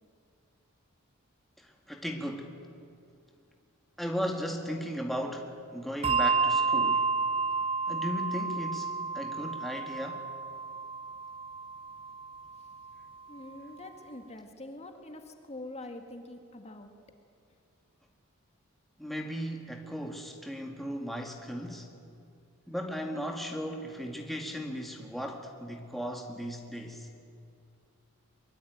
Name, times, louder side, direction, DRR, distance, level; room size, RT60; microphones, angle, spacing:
voice 1, 1.6-2.6 4.0-7.1 7.9-10.3 19.0-21.9 22.7-27.1, equal, ahead, 1 dB, 1.8 m, -36 dB
Bell, 6.0-12.9, right 4 dB, 25° right, 0.5 m, -31 dB
voice 2, 13.3-16.9, left 2 dB, 30° left, 5 dB, 2.0 m, -44 dB
23.0 x 22.5 x 9.4 m, 2.4 s
head